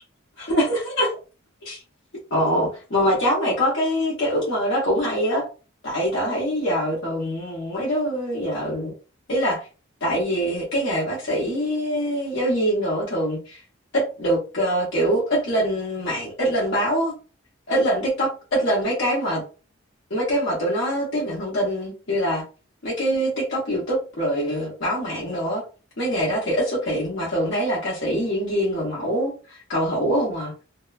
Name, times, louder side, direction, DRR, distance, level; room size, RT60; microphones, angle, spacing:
voice 1, 0.4-1.2 1.6-1.8 2.3-5.5 5.8-8.9 9.3-9.6 10.0-13.6 13.9-17.1 17.7-19.4 20.1-22.4 22.8-25.6 26.0-30.5, equal, 60° left, 0.8 m, -24 dB
2.7 x 2.2 x 2.4 m
head